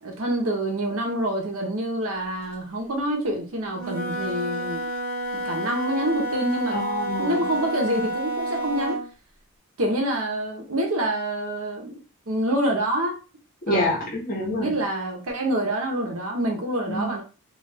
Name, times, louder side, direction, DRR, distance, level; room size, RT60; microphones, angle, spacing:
voice 1, 0.0-4.8 5.3-6.8 7.2-9.0 9.8-11.9 12.3-13.2 13.7-13.9 14.6-17.2, right 1 dB, 75° right, 2 dB, 0.8 m, -26 dB
Wind instrument woodwind instrument, 3.7-9.1, right 1 dB, 40° right, 1.1 m, -29 dB
voice 2, 6.7-7.5 13.7-14.7 16.9-17.1, left 1 dB, 40° left, -2 dB, 0.9 m, -26 dB
2.4 x 2.3 x 3.3 m, 0.34 s
head